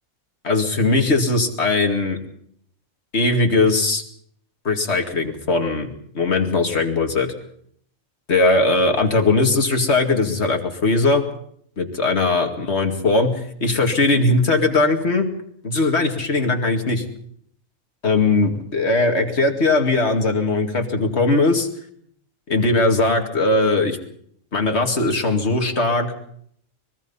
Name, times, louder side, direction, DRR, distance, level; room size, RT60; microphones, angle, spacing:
voice 1, 0.4-2.2 3.1-4.0 4.6-5.9 6.1-7.3 8.3-11.2 11.8-15.3 15.6-17.0 18.0-21.7 22.5-24.0 24.5-26.1, left 2 dB, 55° left, 4 dB, 2.6 m, -19 dB
23.5 x 20.5 x 5.6 m, 0.66 s
omnidirectional pair, 1.4 m